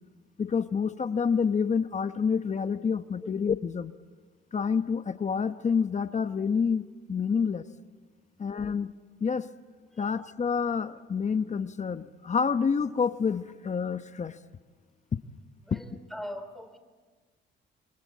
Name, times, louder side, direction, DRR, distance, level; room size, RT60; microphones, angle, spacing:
voice 1, 0.4-3.9 4.5-7.6 8.4-8.9 9.2-9.5 10.0-14.4 15.1-15.2 15.7-15.8, left 6 dB, 35° left, 11 dB, 1.0 m, -28 dB
voice 2, 15.6-16.8, equal, ahead, 7 dB, 3.5 m, -41 dB
27.5 x 24.0 x 8.5 m, 1.4 s
cardioid pair, 90°, 20 cm